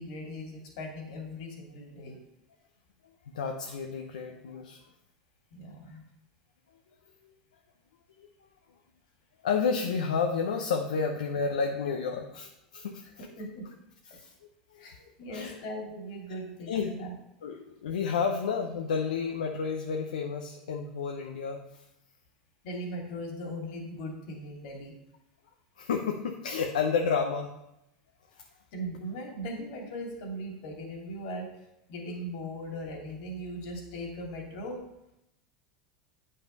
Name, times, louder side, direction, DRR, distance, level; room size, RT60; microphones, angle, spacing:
voice 1, 0.0-2.2 5.5-6.0 13.2-13.7 14.7-17.1 22.6-24.9 28.7-31.5 31.9-34.8, equal, 65° left, 0 dB, 2.8 m, -39 dB
voice 2, 3.3-4.8 7.2-7.3 8.2-8.3 9.4-13.2 14.1-14.3 14.7-14.9 15.3-15.6 16.7-16.9 17.4-21.8 25.8-27.5 28.4-28.5, left 5 dB, 85° left, 2 dB, 0.8 m, -31 dB
8.8 x 5.6 x 5.3 m, 0.85 s
hypercardioid pair, 90°, 4 cm